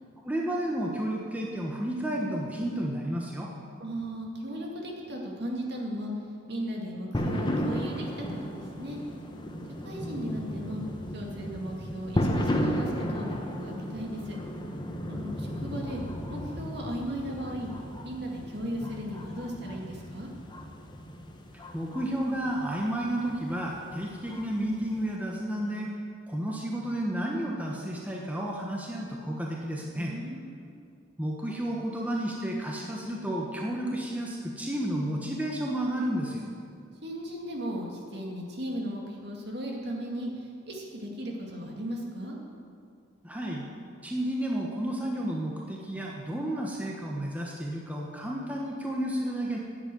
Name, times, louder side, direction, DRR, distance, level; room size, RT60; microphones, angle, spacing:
voice 1, 0.2-3.5 21.7-25.9 26.3-30.1 31.2-36.4 43.2-43.6 44.0-49.6, right 1 dB, 10° right, -2 dB, 1.1 m, -31 dB
voice 2, 3.8-6.1 6.5-9.0 9.8-10.8 11.1-14.4 15.1-16.0 16.3-17.7 18.0-20.3 29.9-30.8 37.0-42.4, equal, 55° right, -1 dB, 2.3 m, -36 dB
sound 1, 7.1-25.1, equal, 20° left, 1.0 m, -35 dB
10.5 x 8.0 x 9.2 m, 2.3 s
head